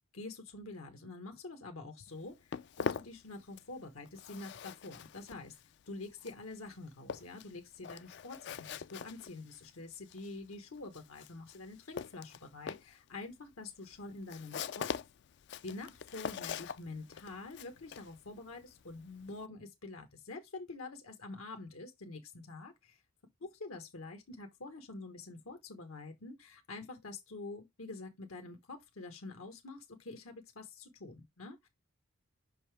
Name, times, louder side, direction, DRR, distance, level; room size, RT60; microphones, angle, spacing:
voice 1, 0.1-5.5 5.9-14.9 15.6-23.0 23.4-31.7, left 3 dB, 80° left, 1.2 m, -47 dB
Walk footsteps, 2.1-19.5, left 6 dB, 55° left, 0.3 m, -43 dB
5.7 x 5.4 x 3.3 m
head